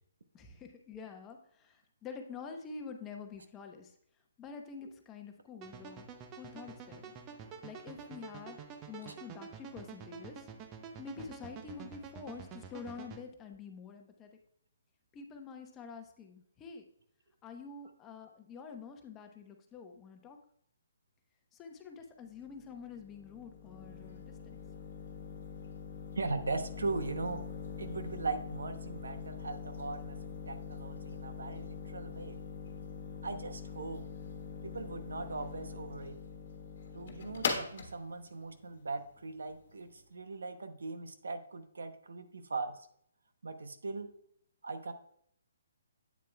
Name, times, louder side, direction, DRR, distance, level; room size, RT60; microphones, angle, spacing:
voice 1, 0.3-3.9 4.4-6.1 6.3-7.2 7.6-8.6 8.9-10.5 11.0-14.4 15.1-16.9 17.4-20.4 21.5-24.7, left 5 dB, 15° left, 4 dB, 0.9 m, -47 dB
sound 1, 5.6-13.2, right 6 dB, 25° right, 0.6 m, -48 dB
sound 2, 22.3-40.0, left 6 dB, 55° left, 1.2 m, -43 dB
voice 2, 26.2-27.5 27.8-32.4 33.2-34.1 34.6-36.2 36.9-42.8 43.4-44.1 44.6-44.9, right 3 dB, 80° right, 9 dB, 0.8 m, -39 dB
8.4 x 7.4 x 2.3 m, 0.67 s
hypercardioid pair, 150°, 0 cm